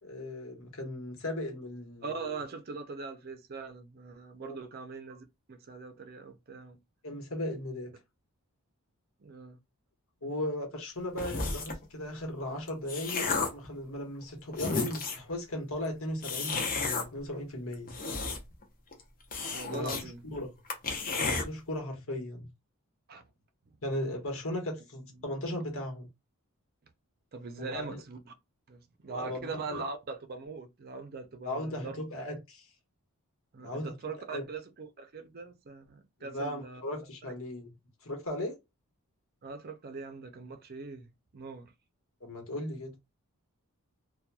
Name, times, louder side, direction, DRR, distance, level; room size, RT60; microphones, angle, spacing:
voice 1, 0.0-2.4 4.4-4.6 7.0-7.9 10.2-18.0 19.7-20.5 21.2-22.5 23.8-26.1 27.6-28.0 29.1-29.8 31.4-32.7 33.6-33.9 34.3-34.4 36.2-37.7 38.0-38.6 42.2-42.9, left 1 dB, 65° left, 1.2 m, -37 dB
voice 2, 2.0-6.8 9.2-9.6 19.5-20.3 23.1-23.2 27.3-28.3 28.7-32.0 33.5-36.8 37.2-37.3 39.4-41.7, right 4 dB, 45° right, 0.5 m, -41 dB
sound 1, 11.2-11.8 12.5-13.7 14.2-14.3 14.5-15.3 16.2-17.0 17.7-18.6 18.9-19.0 19.3-20.0 20.4-20.5 20.7-21.4, left 4 dB, 40° left, 0.7 m, -32 dB
2.9 x 2.2 x 2.2 m
head